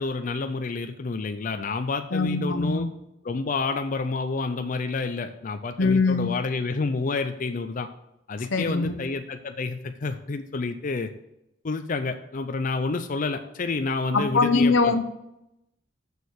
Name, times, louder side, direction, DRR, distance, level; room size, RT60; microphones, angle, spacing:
voice 1, 0.0-2.9 3.2-7.9 8.3-11.1 11.6-14.9, left 3 dB, 45° left, 7 dB, 0.5 m, -29 dB
voice 2, 2.1-2.9 5.8-6.3 8.5-9.0 14.1-15.0, left 3 dB, 85° left, 9 dB, 0.9 m, -22 dB
7.0 x 6.4 x 6.5 m, 0.86 s
head